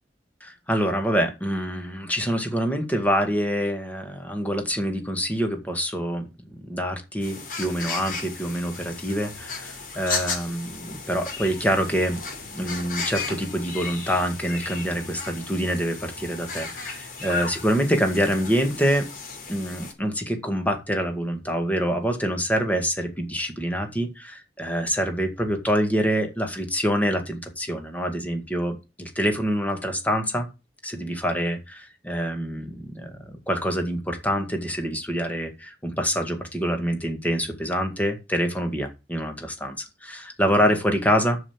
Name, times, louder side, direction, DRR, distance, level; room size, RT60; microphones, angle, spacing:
voice 1, 0.4-6.3 6.6-12.2 12.5-19.1 19.5-30.5 30.8-33.1 33.5-41.4, equal, 10° left, 5 dB, 2.0 m, -26 dB
sound 1, 7.2-19.9, left 4 dB, 50° left, 4.0 m, -35 dB
7.1 x 6.5 x 7.3 m, 0.28 s
head